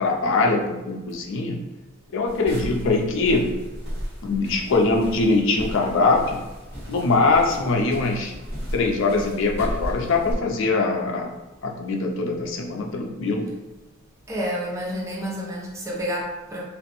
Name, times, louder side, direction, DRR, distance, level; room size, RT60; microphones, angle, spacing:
voice 1, 0.0-1.6 2.1-3.6 4.2-6.4 6.9-8.3 8.7-11.3 11.6-13.5, left 3 dB, 65° left, 1 dB, 0.4 m, -22 dB
sound 1, 2.3-10.3, equal, 55° right, 1.3 m, -35 dB
voice 2, 14.3-16.6, equal, 15° right, -4 dB, 0.5 m, -29 dB
2.9 x 2.0 x 2.9 m, 1.1 s
head